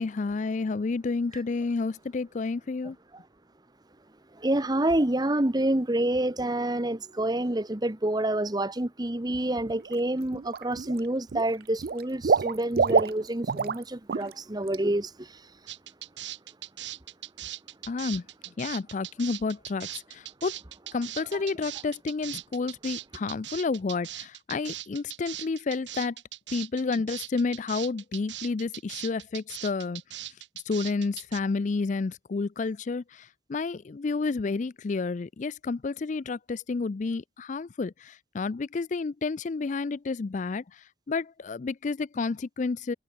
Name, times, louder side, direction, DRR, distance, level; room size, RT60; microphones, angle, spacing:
voice 1, 0.0-3.0 17.9-18.3 18.6-20.5 20.9-26.2 26.5-30.4 30.7-42.9, left 4 dB, 40° left, 0.4 m, -30 dB
voice 2, 4.3-15.4, right 1 dB, 20° right, 1.1 m, -28 dB
Water / Liquid, 9.7-10.0 10.3-11.0 11.3-13.8 14.1-14.3 14.7-14.8, right 5 dB, 55° right, 0.4 m, -26 dB
sound 1, 15.7-31.4, right 14 dB, 75° right, 2.7 m, -40 dB
head